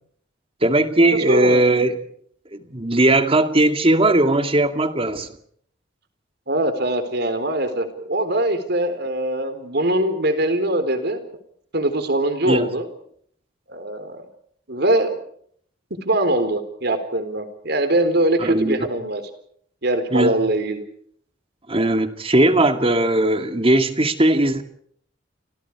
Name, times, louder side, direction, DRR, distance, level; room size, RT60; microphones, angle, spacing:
voice 1, 0.6-2.0 2.5-5.3 12.4-12.7 18.4-18.9 20.1-20.3 21.7-24.6, right 1 dB, 30° right, 8 dB, 2.2 m, -18 dB
voice 2, 1.1-1.6 6.5-11.3 11.7-12.9 13.7-14.2 14.7-15.2 16.0-19.2 19.8-20.8, right 1 dB, 60° right, 9 dB, 4.1 m, -22 dB
30.0 x 25.5 x 4.8 m, 0.64 s
head